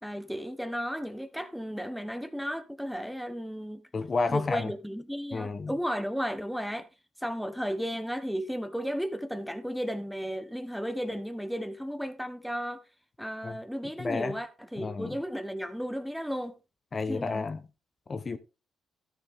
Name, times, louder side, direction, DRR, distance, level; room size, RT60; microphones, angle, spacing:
voice 1, 0.0-3.8 4.3-6.9 7.2-12.8 13.2-16.6 17.1-17.5, equal, ahead, 1.3 m, -34 dB
voice 2, 3.9-4.7 5.3-5.7 13.4-13.6 14.0-14.3 14.8-15.2 16.9-17.6 18.1-18.4, left 4 dB, 35° left, 1.2 m, -31 dB
13.0 x 7.3 x 3.7 m
cardioid pair, 90°, 0 cm